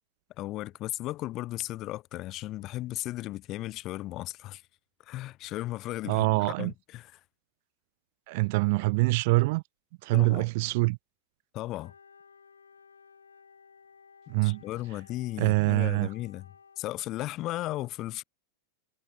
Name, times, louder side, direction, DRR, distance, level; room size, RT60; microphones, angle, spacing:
voice 1, 0.4-4.6 5.1-7.2 10.1-10.5 11.5-11.9 14.4-16.5 16.8-18.2, left 16 dB, 35° left, 0.7 m, -36 dB
voice 2, 6.1-6.7 8.3-9.6 10.0-11.0 14.3-14.6 15.4-16.1, right 25 dB, 50° right, 0.9 m, -25 dB
Wind instrument woodwind instrument, 11.8-17.0, left 5 dB, 75° left, 3.2 m, -56 dB
figure-of-eight pair, 90°, 0 cm